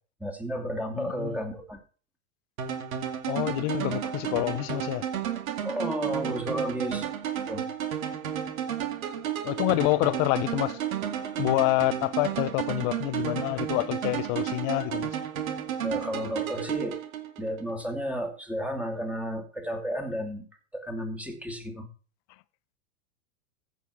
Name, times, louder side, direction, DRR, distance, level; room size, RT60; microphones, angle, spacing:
voice 1, 0.2-1.8 5.6-7.1 7.5-7.7 15.8-17.0 17.4-20.4 20.7-21.9, equal, 5° right, 2.4 m, -32 dB
voice 2, 0.9-1.4 3.3-5.0 9.4-10.8 11.4-15.1, left 21 dB, 45° left, 0.7 m, -27 dB
sound 1, 2.6-17.6, right 9 dB, 75° right, 2.2 m, -32 dB
15.0 x 5.4 x 6.2 m
hypercardioid pair, 115°, 42 cm